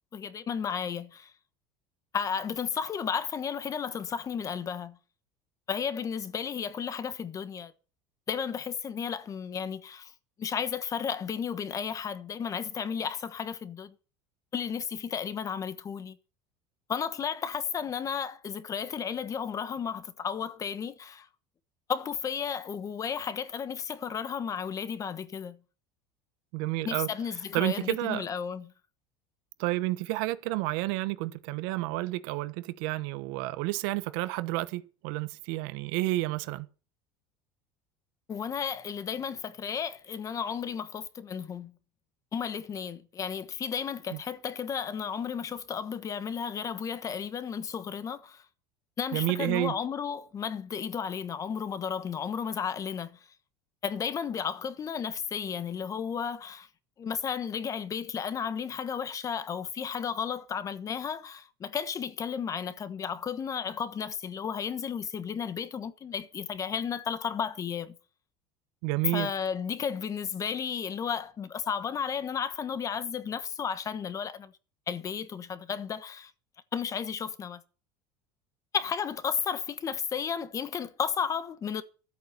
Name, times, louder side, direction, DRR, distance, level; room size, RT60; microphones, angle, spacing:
voice 1, 0.1-1.3 2.1-5.0 5.7-7.7 8.3-10.1 10.4-13.9 14.5-16.2 16.9-21.3 21.9-25.6 26.8-28.7 38.3-41.7 42.3-48.4 49.0-53.2 53.8-56.7 57.0-67.9 69.1-74.5 74.9-76.3 76.7-77.6 78.7-81.8, left 7 dB, 30° left, 1.3 m, -33 dB
voice 2, 26.5-27.1 27.5-28.2 29.6-36.7 44.1-44.2 49.1-49.7 68.8-69.3, right 19 dB, 70° right, 1.1 m, -30 dB
13.5 x 8.6 x 6.9 m
supercardioid pair, 135°, 12 cm